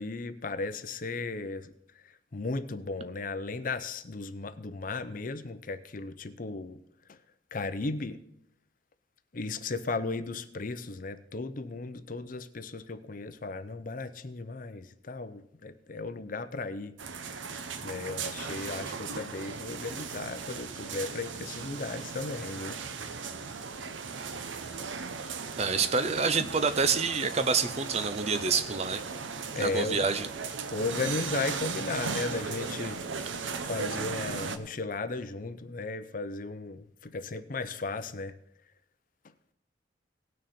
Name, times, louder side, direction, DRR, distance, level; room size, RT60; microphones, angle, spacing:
voice 1, 0.0-1.7 2.3-6.8 7.5-8.2 9.3-17.0 17.8-22.8 29.5-30.1 30.7-33.0 33.7-38.4, left 3 dB, 45° left, 0.6 m, -35 dB
sound 1, 17.0-34.6, right 5 dB, 85° right, 0.8 m, -37 dB
voice 2, 25.6-29.0 29.6-30.3, right 4 dB, 35° right, 0.6 m, -27 dB
18.5 x 6.4 x 4.3 m
head